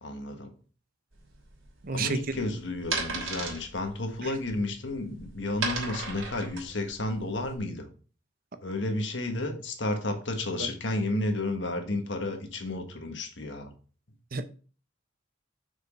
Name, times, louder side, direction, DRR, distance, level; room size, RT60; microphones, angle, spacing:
voice 1, 0.0-0.5 1.9-7.9 8.6-13.7, left 2 dB, 65° left, 5 dB, 1.5 m, -32 dB
sound 1, 1.1-7.6, right 4 dB, 85° right, 3.1 m, -36 dB
voice 2, 1.8-2.4 4.2-4.3 10.6-10.7 14.3-14.4, right 4 dB, 45° right, 10 dB, 0.7 m, -31 dB
6.2 x 4.9 x 5.2 m, 0.38 s
head